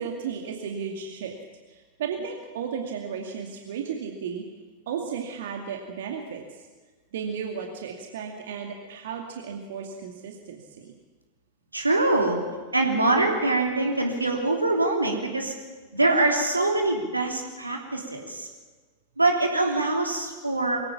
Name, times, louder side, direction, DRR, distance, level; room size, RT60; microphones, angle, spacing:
voice 1, 0.0-1.3 1.7-4.4 4.9-6.7 7.1-10.9, right 6 dB, 60° right, 2 dB, 2.3 m, -34 dB
voice 2, 11.7-12.4 12.7-15.5 15.9-18.5 19.2-20.8, right 2 dB, 85° right, 2 dB, 3.2 m, -24 dB
24.0 x 16.5 x 7.3 m, 1.3 s
figure-of-eight pair, 90°, 0 cm